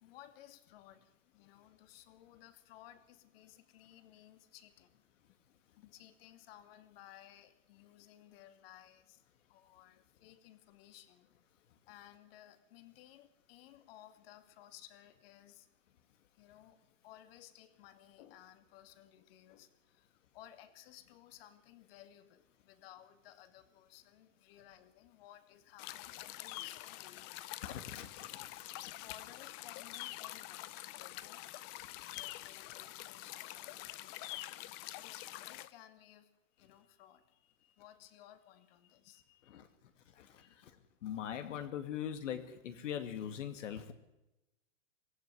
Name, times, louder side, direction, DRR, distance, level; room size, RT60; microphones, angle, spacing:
voice 1, 0.0-4.9 5.8-9.2 9.5-11.3 11.9-15.7 16.4-16.8 17.0-19.7 20.0-20.1 20.3-27.2 28.3-28.5 29.0-30.7 31.0-31.4 32.2-34.1 34.9-36.3 36.6-39.6 40.4-40.5, left 12 dB, 45° left, 9 dB, 2.6 m, -58 dB
sound 1, 25.8-35.7, left 16 dB, 30° left, 0.8 m, -46 dB
voice 2, 27.7-28.5 28.8-29.1 39.5-39.7 40.1-43.9, left 9 dB, 70° left, 8 dB, 2.4 m, -42 dB
25.5 x 16.5 x 9.8 m, 0.96 s
hypercardioid pair, 145°, 39 cm